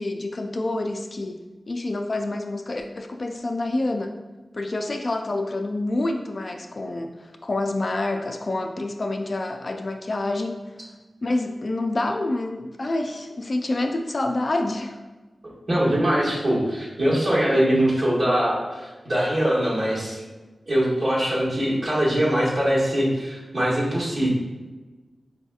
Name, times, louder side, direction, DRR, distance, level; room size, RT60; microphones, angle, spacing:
voice 1, 0.0-1.4 1.7-4.1 4.5-10.6 11.2-15.0, left 2 dB, 55° left, 4 dB, 0.3 m, -27 dB
voice 2, 15.7-20.2 20.7-24.3, equal, 60° right, -7 dB, 1.4 m, -22 dB
4.0 x 2.7 x 2.3 m, 1.2 s
cardioid pair, 40°, 0 cm